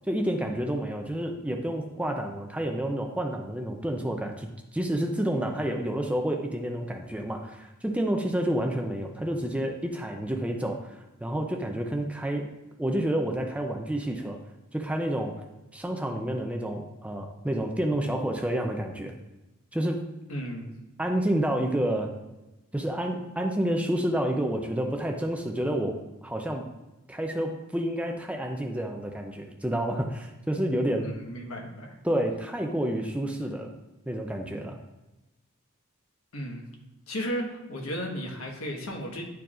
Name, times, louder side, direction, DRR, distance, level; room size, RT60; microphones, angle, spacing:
voice 1, 0.1-12.5 12.8-14.4 14.7-15.3 15.7-19.1 19.7-20.0 21.0-22.1 22.7-26.0 26.2-26.7 27.1-31.1 32.0-33.7 34.1-34.8, right 1 dB, 5° right, 3 dB, 0.4 m, -29 dB
voice 2, 20.3-20.7 31.0-31.9 36.3-36.7 37.1-39.2, equal, 75° left, 1 dB, 1.3 m, -34 dB
10.5 x 4.6 x 2.5 m, 1.0 s
head